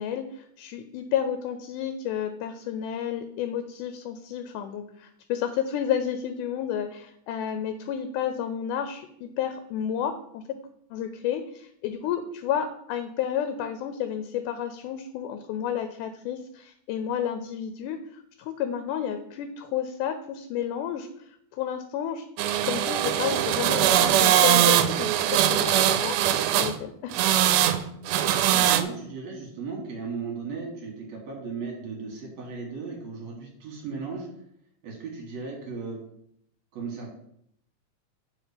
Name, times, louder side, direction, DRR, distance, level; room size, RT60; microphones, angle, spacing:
voice 1, 0.0-10.6 10.9-22.2 22.6-26.3 26.5-27.1, left 9 dB, 85° left, 8 dB, 2.1 m, -31 dB
sound 1, 22.4-26.8 27.1-27.8 28.1-28.8, right 11 dB, 90° right, 2.1 m, -21 dB
voice 2, 28.3-34.3 34.8-36.0 36.7-37.1, right 4 dB, 65° right, 0 dB, 2.7 m, -36 dB
6.3 x 4.7 x 5.0 m, 0.71 s
omnidirectional pair, 3.6 m